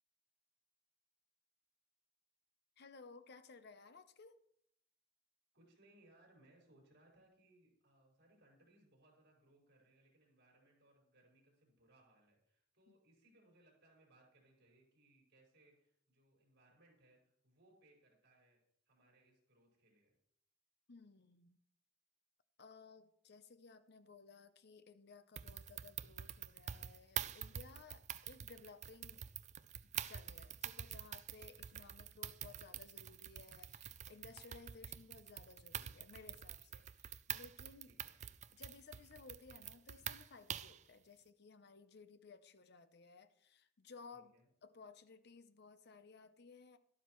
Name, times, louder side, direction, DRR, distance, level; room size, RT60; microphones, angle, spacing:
voice 1, 2.8-4.4 12.9-13.0 20.9-21.6 22.6-29.2 30.1-37.9 38.5-44.3 44.6-46.8, left 4 dB, 60° left, 11 dB, 0.7 m, -58 dB
voice 2, 5.5-18.6 18.9-20.1 37.8-38.1 44.1-44.5, right 1 dB, 60° right, -2 dB, 5.5 m, -69 dB
sound 1, 25.4-40.8, right 10 dB, 40° right, 0.4 m, -47 dB
12.5 x 12.5 x 3.1 m, 0.70 s
head